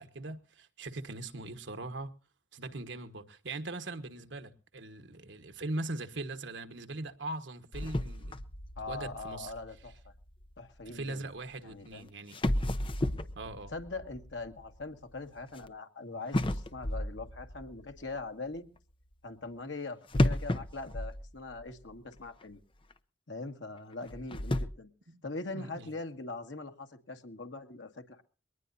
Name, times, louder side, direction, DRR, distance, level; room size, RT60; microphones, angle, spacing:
voice 1, 0.0-2.1 2.5-8.3 8.9-9.5 10.9-12.4 13.3-13.7 25.1-25.2 25.5-25.9, right 2 dB, 85° right, 1.4 m, -40 dB
sound 1, 7.7-10.9 11.8-11.9 12.3-15.7 16.3-18.2 20.1-21.9 22.2-22.3 22.9-23.0 24.0-24.7, left 1 dB, 30° left, 0.7 m, -33 dB
voice 2, 8.8-9.9 10.6-11.3 11.6-12.1 13.7-18.7 19.2-22.6 23.3-24.9 25.2-28.2, left 3 dB, 85° left, 1.8 m, -42 dB
22.0 x 19.0 x 2.7 m
head